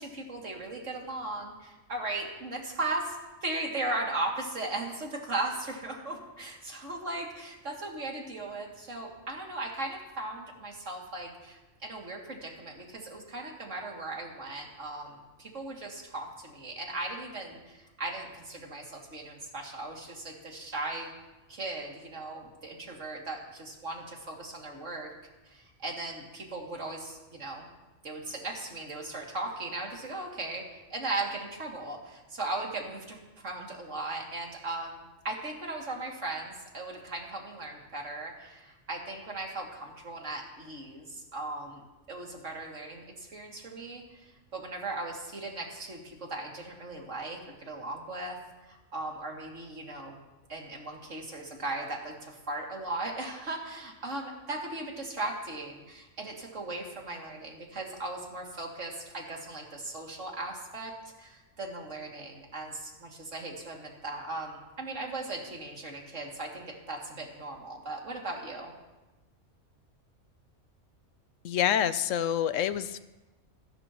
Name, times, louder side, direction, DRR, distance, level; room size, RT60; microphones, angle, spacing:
voice 1, 0.0-3.2 3.4-21.1 21.5-25.1 25.4-27.6 28.0-48.4 48.6-50.2 50.5-60.9 61.2-68.7, right 2 dB, 75° right, -1 dB, 3.0 m, -37 dB
voice 2, 71.4-73.0, left 9 dB, 80° left, 14 dB, 1.0 m, -27 dB
28.0 x 13.0 x 3.0 m, 1.1 s
omnidirectional pair, 1.3 m